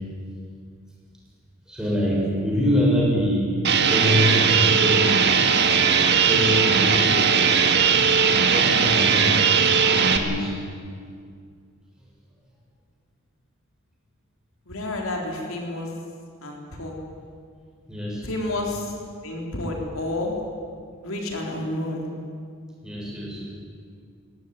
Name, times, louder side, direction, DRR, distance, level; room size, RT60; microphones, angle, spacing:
voice 1, 1.7-5.2 6.2-7.4 8.5-9.4 9.9-10.6 17.9-18.3 22.8-23.4, equal, 5° right, -4 dB, 7.1 m, -25 dB
sound 1, 3.6-10.2, right 6 dB, 50° right, 1.8 m, -19 dB
voice 2, 14.7-15.9 16.4-17.0 18.2-18.9 19.2-20.3 21.0-22.1, left 1 dB, 75° left, 0 dB, 4.0 m, -30 dB
22.5 x 17.5 x 9.7 m, 2.1 s
head